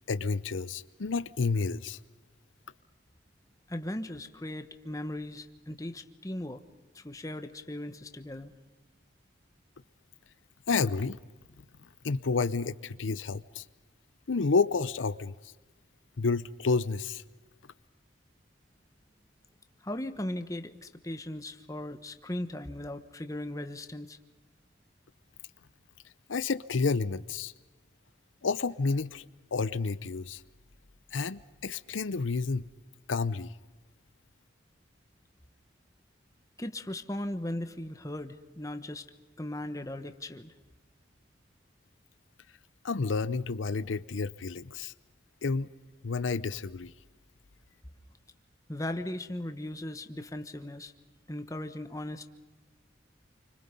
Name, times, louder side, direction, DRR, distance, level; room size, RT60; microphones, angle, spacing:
voice 1, 0.1-2.0 10.7-11.2 12.0-13.6 14.3-15.3 16.2-17.2 26.3-27.5 28.4-29.3 29.5-30.4 31.1-32.7 33.1-33.5 42.8-44.9 45.4-45.7 46.0-46.9, left 4 dB, 90° left, 0.7 m, -30 dB
voice 2, 3.7-6.6 6.9-8.5 19.8-24.2 36.6-39.1 39.4-40.5 48.7-50.9 51.3-52.3, left 1 dB, 15° left, 1.2 m, -38 dB
29.5 x 25.0 x 5.4 m
head